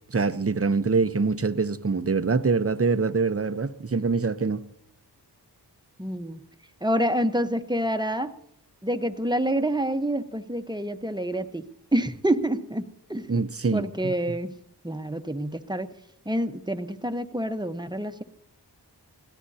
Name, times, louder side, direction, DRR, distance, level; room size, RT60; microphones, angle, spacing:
voice 1, 0.1-4.6 13.3-14.1, right 4 dB, 35° right, 0.8 m, -24 dB
voice 2, 6.0-6.4 6.8-8.3 8.8-11.7 11.9-13.3 13.7-14.5 14.8-15.9 16.2-18.2, right 1 dB, 10° right, 1.0 m, -27 dB
25.5 x 17.5 x 2.8 m
wide cardioid pair, 65°, 41 cm